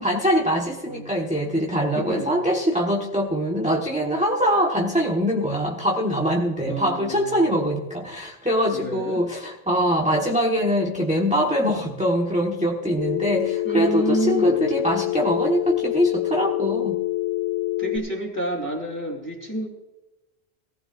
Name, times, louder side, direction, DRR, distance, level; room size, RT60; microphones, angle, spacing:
voice 1, 0.0-17.0, equal, 5° right, -1 dB, 1.2 m, -23 dB
voice 2, 1.9-2.4 6.7-7.5 8.7-9.2 13.6-14.7 17.8-19.7, right 1 dB, 15° left, -4 dB, 2.8 m, -29 dB
Telephone, 13.0-18.0, left 17 dB, 85° left, 1.5 m, -26 dB
18.0 x 15.0 x 2.5 m, 1.0 s
omnidirectional pair, 1.1 m